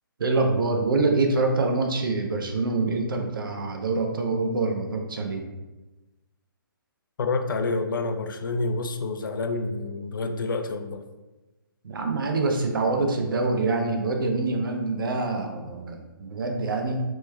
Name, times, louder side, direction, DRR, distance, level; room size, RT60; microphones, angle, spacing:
voice 1, 0.2-5.5 11.8-17.0, right 3 dB, 70° right, 3 dB, 0.6 m, -25 dB
voice 2, 7.2-11.0, left 3 dB, 65° left, 7 dB, 0.4 m, -28 dB
3.1 x 2.2 x 3.3 m, 1.1 s
hypercardioid pair, 145°, 12 cm